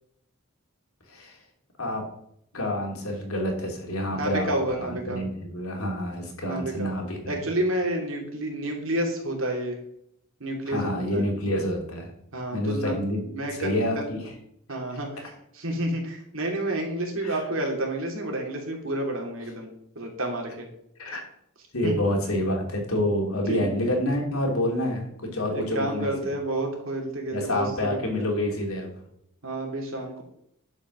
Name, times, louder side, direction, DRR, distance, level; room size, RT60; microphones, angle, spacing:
voice 1, 2.5-4.5 4.8-7.4 10.7-12.1 12.5-13.2 13.6-14.2 17.2-17.4 21.0-21.2 21.7-26.3 27.3-28.9, left 1 dB, 90° left, 1 dB, 2.8 m, -28 dB
voice 2, 4.1-5.2 6.4-6.9 7.3-9.8 10.4-11.3 12.3-14.1 14.7-20.7 21.8-21.9 23.5-23.7 25.5-28.2 29.4-30.2, right 1 dB, 65° right, 1 dB, 2.8 m, -30 dB
11.0 x 5.2 x 6.2 m, 0.73 s
head